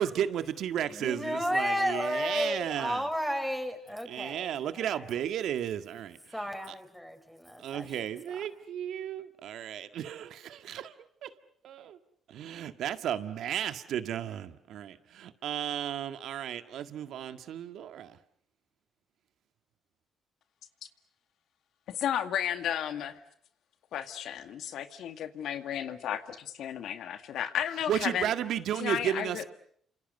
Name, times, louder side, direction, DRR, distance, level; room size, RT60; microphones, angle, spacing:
voice 1, 0.0-3.1 4.1-6.3 6.7-6.8 7.6-10.9 11.2-11.3 11.6-12.0 12.3-18.2 27.9-29.4, right 10 dB, 75° right, 10 dB, 1.8 m, -34 dB
voice 2, 0.9-5.1 6.3-7.9, equal, ahead, 6 dB, 5.8 m, -32 dB
voice 3, 21.9-23.2 23.9-28.3 28.8-29.4, left 10 dB, 75° left, 9 dB, 2.1 m, -33 dB
29.0 x 27.0 x 6.9 m, 0.63 s
supercardioid pair, 65°, 0 cm